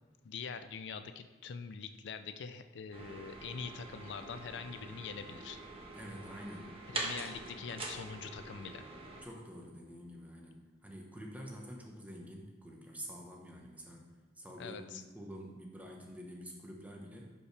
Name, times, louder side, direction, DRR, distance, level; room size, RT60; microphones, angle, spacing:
voice 1, 0.2-5.6 6.9-8.8 14.6-15.0, left 5 dB, 70° left, 9 dB, 0.4 m, -44 dB
sound 1, 2.9-9.2, right 2 dB, 30° right, 1.1 m, -44 dB
voice 2, 5.9-6.8 9.2-14.1 14.3-17.3, equal, 10° right, 0 dB, 1.1 m, -48 dB
11.5 x 5.4 x 3.3 m, 1.4 s
head